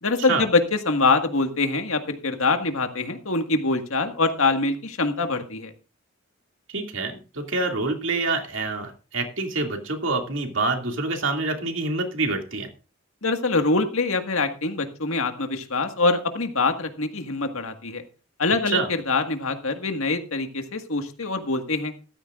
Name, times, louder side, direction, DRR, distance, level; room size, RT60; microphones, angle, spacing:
voice 1, 0.0-5.7 13.2-18.0 18.4-21.9, left 3 dB, 75° left, 6 dB, 1.8 m, -24 dB
voice 2, 6.7-12.7 18.7-18.9, right 3 dB, 65° right, 4 dB, 2.5 m, -26 dB
14.5 x 13.5 x 2.5 m, 0.35 s
head